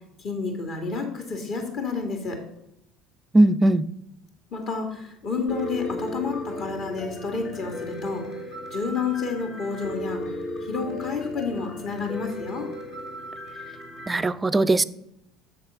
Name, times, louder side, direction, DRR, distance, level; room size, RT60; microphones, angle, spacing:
voice 1, 0.2-2.4 4.5-8.2 8.7-12.7, left 4 dB, 50° left, 2.2 m, -30 dB
voice 2, 3.3-3.8 14.1-14.8, right 2 dB, 20° right, 0.4 m, -19 dB
Piano, 5.5-14.2, left 1 dB, 70° left, 2.5 m, -36 dB
7.3 x 6.5 x 5.5 m
figure-of-eight pair, 65°, 0 cm